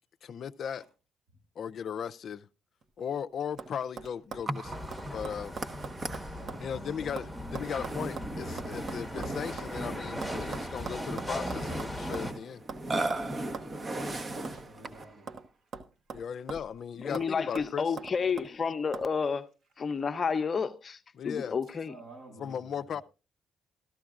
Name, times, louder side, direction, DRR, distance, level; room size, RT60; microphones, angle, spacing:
voice 1, 0.2-0.8 1.6-2.5 3.0-5.5 6.6-12.6 16.1-17.9 21.2-21.6 22.4-23.0, left 7 dB, 60° left, 0.5 m, -37 dB
sound 1, 2.8-3.2 3.6-3.7 4.0-6.7 6.9-9.7 10.2-12.3 12.7-12.8 13.1-13.2 13.5-13.7 14.0-14.1 14.4-15.5 15.7-16.8 17.1-17.3 17.6-18.5 18.9-19.1, right 5 dB, 60° right, 1.1 m, -42 dB
Burping eructation, 4.5-15.2, right 2 dB, 35° right, 1.1 m, -37 dB
sound 2, 4.6-12.3, left 1 dB, 10° right, 1.3 m, -40 dB
voice 2, 6.3-6.9 7.2-7.3 9.0-9.2 9.5-9.6 13.9-15.3 21.9-23.0, right 2 dB, 75° right, 7.3 m, -52 dB
voice 3, 17.0-19.5 19.8-21.0 21.2-21.9, left 5 dB, 40° left, 0.8 m, -30 dB
14.5 x 13.0 x 2.4 m
cardioid pair, 90°, 0 cm